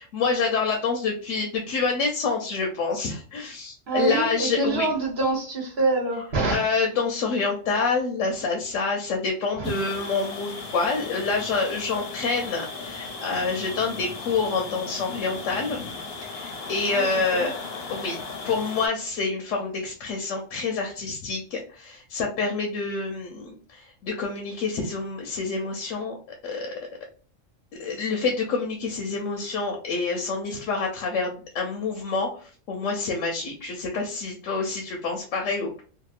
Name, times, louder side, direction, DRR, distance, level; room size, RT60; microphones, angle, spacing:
voice 1, 0.0-4.9 6.5-15.8 16.2-17.5 17.9-18.2 18.4-26.1 26.4-26.7 27.8-35.8, left 4 dB, 80° left, 1 dB, 0.9 m, -27 dB
voice 2, 3.9-6.6 9.6-9.7 16.9-17.5, right 3 dB, 60° right, -1 dB, 1.0 m, -26 dB
sound 1, 9.6-18.9, left 4 dB, 60° left, 0.7 m, -36 dB
2.7 x 2.3 x 2.3 m, 0.41 s
omnidirectional pair, 1.3 m